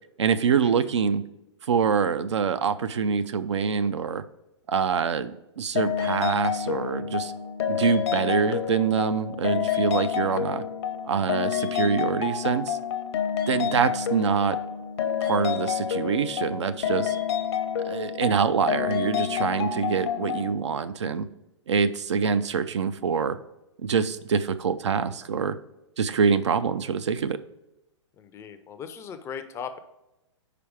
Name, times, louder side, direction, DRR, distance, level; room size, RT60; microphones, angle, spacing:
voice 1, 0.2-1.2 1.6-4.2 4.7-7.3 7.7-10.6 11.0-12.8 13.5-14.6 15.2-17.2 17.8-21.3 21.7-23.4 23.8-25.6 26.0-27.4, right 6 dB, 70° right, 12 dB, 0.4 m, -25 dB
sound 1, 5.8-20.5, left 8 dB, 55° left, 0.7 m, -29 dB
voice 2, 28.2-29.8, left 7 dB, 20° left, 9 dB, 0.4 m, -38 dB
5.0 x 4.6 x 4.7 m, 0.90 s
figure-of-eight pair, 110°, 15 cm